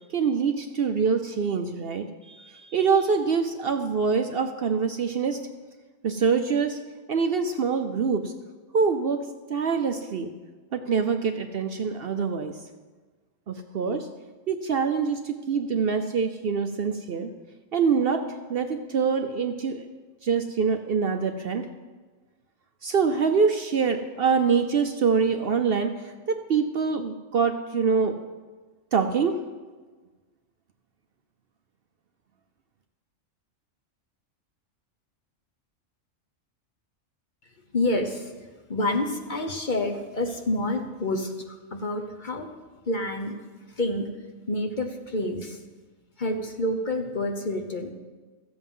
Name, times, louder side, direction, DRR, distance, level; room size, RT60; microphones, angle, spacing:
voice 1, 0.1-5.4 6.0-6.8 7.1-8.3 8.7-9.2 9.5-10.3 10.7-12.5 13.5-14.1 14.5-17.3 17.7-18.2 18.5-19.9 20.2-21.7 22.8-25.9 26.3-28.1 28.9-29.4, right 5 dB, 55° right, 7 dB, 0.7 m, -25 dB
voice 2, 37.7-42.5 42.9-43.3 43.8-44.1 44.5-45.6 46.2-47.9, left 1 dB, 40° left, 3 dB, 1.0 m, -28 dB
14.0 x 7.9 x 5.4 m, 1.3 s
omnidirectional pair, 1.3 m